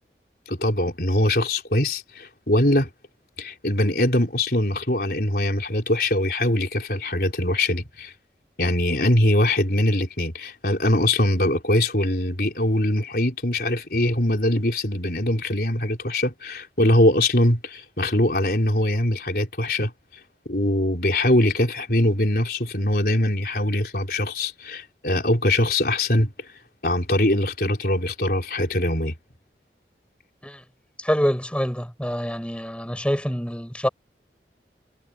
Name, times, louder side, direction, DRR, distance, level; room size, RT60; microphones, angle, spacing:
voice 1, 0.5-2.9 3.4-8.1 8.6-19.9 20.5-26.3 26.8-29.1, left 1 dB, 55° left, 4.6 m, -22 dB
voice 2, 31.0-33.9, equal, 5° left, 5.5 m, -26 dB
head